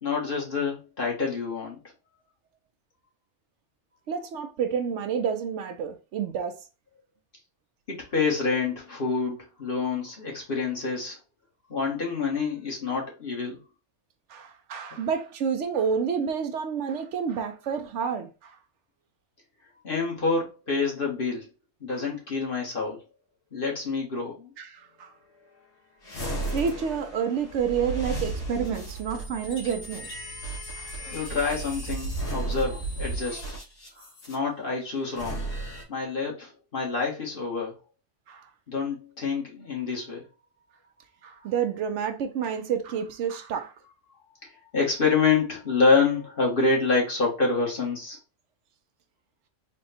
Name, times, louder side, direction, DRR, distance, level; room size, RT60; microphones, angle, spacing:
voice 1, 0.0-1.8 7.9-11.2 11.7-13.6 14.9-15.0 19.8-21.4 21.8-23.0 23.5-24.5 31.1-33.4 34.3-35.4 35.9-37.7 38.7-40.2 44.7-48.2, left 4 dB, 45° left, 1.5 m, -27 dB
voice 2, 4.1-6.6 14.3-18.6 21.9-22.1 24.6-25.1 26.5-30.1 30.7-30.9 33.3-33.4 34.0-34.1 38.3-38.5 41.2-43.7, right 7 dB, 70° right, 0.9 m, -29 dB
sound 1, 26.0-34.3 35.0-35.8, right 2 dB, 75° left, 1.9 m, -34 dB
4.2 x 2.3 x 4.0 m
omnidirectional pair, 1.3 m